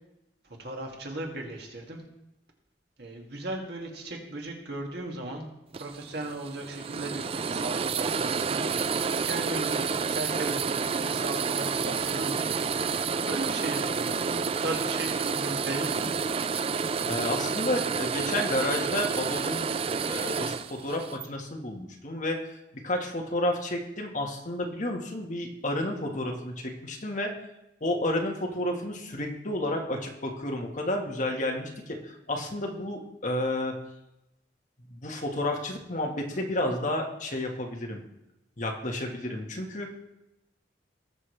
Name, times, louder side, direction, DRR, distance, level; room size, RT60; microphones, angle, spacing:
voice 1, 0.4-2.0 3.0-5.5 5.7-12.7 13.3-16.2, right 2 dB, 60° right, 0 dB, 2.2 m, -37 dB
sound 1, 5.7-21.3, right 5 dB, 30° right, 0.3 m, -29 dB
voice 2, 17.1-19.7 20.0-22.6 22.8-27.3 27.8-33.7 34.9-38.0 38.6-39.9, left 1 dB, 45° left, 2 dB, 1.5 m, -31 dB
19.0 x 6.4 x 3.3 m, 0.91 s
head